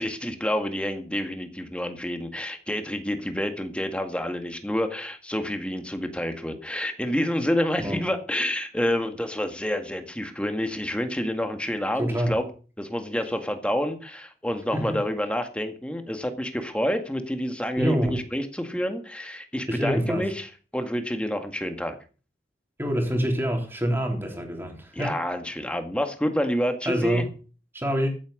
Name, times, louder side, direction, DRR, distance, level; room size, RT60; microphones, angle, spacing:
voice 1, 0.0-12.4 12.8-22.0 24.9-27.3, equal, 5° left, 1.9 m, -28 dB
voice 2, 12.0-12.4 14.7-15.0 17.8-18.2 19.7-20.3 22.8-25.2 26.9-27.2 27.7-28.1, equal, 15° right, 3.8 m, -26 dB
15.0 x 8.8 x 6.6 m
head